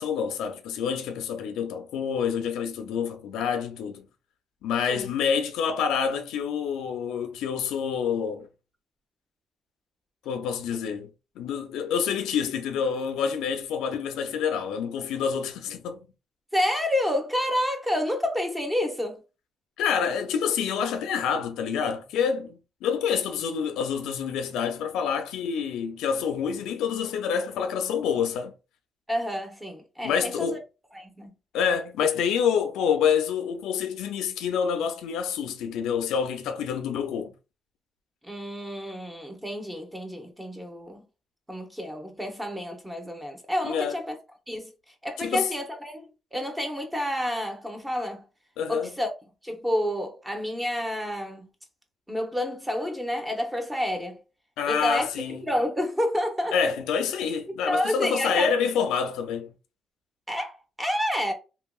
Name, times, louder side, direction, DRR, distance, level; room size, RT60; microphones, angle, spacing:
voice 1, 0.0-4.1 4.6-8.5 10.3-11.1 11.4-16.1 19.8-28.5 30.0-30.6 31.5-37.3 43.6-44.0 45.2-45.5 48.6-49.0 54.6-55.4 56.5-59.5, left 7 dB, 90° left, 0.5 m, -27 dB
voice 2, 16.5-19.2 29.1-30.6 30.9-31.3 38.2-41.0 41.5-44.1 44.5-48.2 48.7-49.1 49.4-51.5 52.1-54.2 54.7-55.1 55.4-56.6 57.6-58.5 60.3-61.3, left 1 dB, 10° right, 0.9 m, -29 dB
2.9 x 2.7 x 2.3 m
cardioid pair, 90°, 0 cm